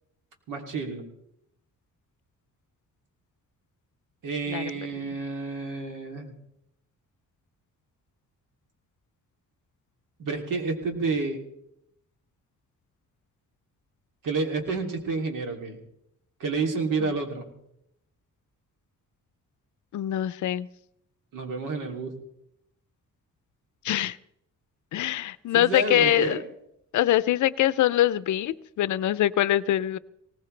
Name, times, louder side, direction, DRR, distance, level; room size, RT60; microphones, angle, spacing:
voice 1, 0.5-1.1 4.2-6.3 10.2-11.4 14.2-15.8 16.4-17.5 21.3-22.1 25.5-26.4, right 4 dB, 75° right, 3 dB, 2.9 m, -29 dB
voice 2, 19.9-20.7 23.8-24.2 24.9-26.4 26.9-30.0, left 13 dB, 65° left, 17 dB, 0.5 m, -23 dB
20.0 x 18.5 x 3.3 m, 0.79 s
wide cardioid pair, 170°, 32 cm